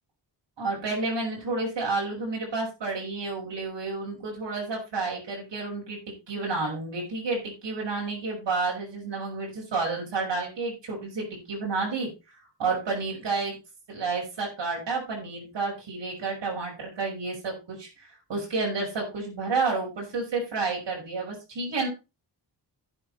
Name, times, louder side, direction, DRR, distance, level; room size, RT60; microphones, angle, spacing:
voice 1, 0.6-6.0 6.3-12.1 12.6-13.5 13.9-17.9 18.3-21.9, right 3 dB, 85° right, -2 dB, 6.3 m, -30 dB
11.5 x 8.9 x 4.3 m, 0.28 s
wide cardioid pair, 115°, 42 cm